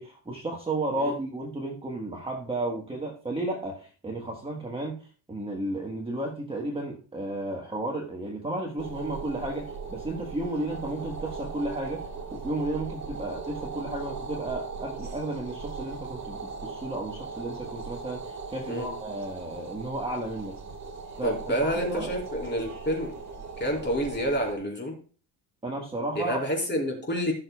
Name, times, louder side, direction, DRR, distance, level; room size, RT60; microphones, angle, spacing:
voice 1, 0.0-20.6 21.2-22.1 25.6-26.4, right 2 dB, 10° right, -1 dB, 1.3 m, -33 dB
sound 1, 8.8-24.5, right 4 dB, 35° right, 1.8 m, -39 dB
voice 2, 21.2-23.1 23.6-24.9 26.2-27.3, equal, 25° left, 0 dB, 4.2 m, -28 dB
18.0 x 6.6 x 2.3 m, 0.40 s
cardioid pair, 140°, 46 cm